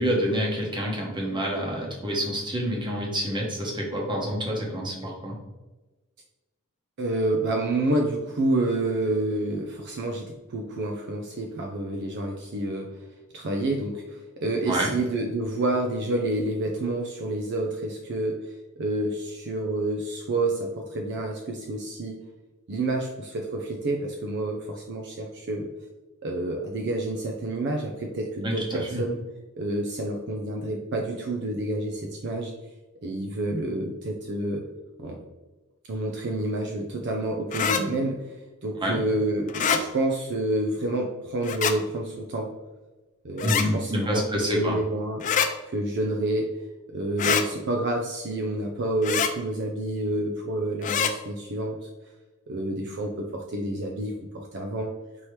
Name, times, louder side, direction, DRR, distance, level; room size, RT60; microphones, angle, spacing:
voice 1, 0.0-5.4 14.7-14.9 28.4-29.0 38.8-39.0 43.4-44.8, equal, 20° right, -2 dB, 1.0 m, -27 dB
voice 2, 7.0-12.9 13.3-22.2 22.7-25.7 26.2-29.2 29.6-32.5 33.0-34.6 35.0-35.2 35.9-38.3 38.6-42.5 43.2-45.2 45.7-46.5 46.9-51.9 52.5-54.9, right 1 dB, 50° right, 1 dB, 0.5 m, -28 dB
sound 1, 37.5-37.8 39.5-39.8 41.4-41.7 43.4-43.7 45.2-45.5 47.2-47.4 49.0-49.3 50.8-51.1, left 7 dB, 35° left, 0.3 m, -24 dB
4.6 x 2.9 x 3.2 m, 1.1 s
head